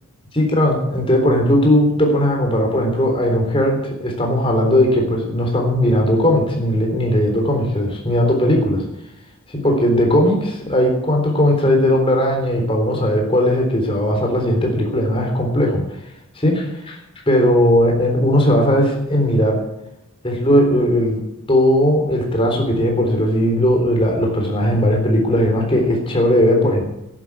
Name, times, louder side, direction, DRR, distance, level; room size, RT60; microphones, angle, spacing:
voice 1, 0.4-8.8 9.6-15.8 16.4-17.0 17.3-19.6 20.2-21.2 21.5-26.8, equal, 25° left, 1 dB, 3.9 m, -17 dB
12.0 x 11.0 x 8.8 m, 0.85 s
head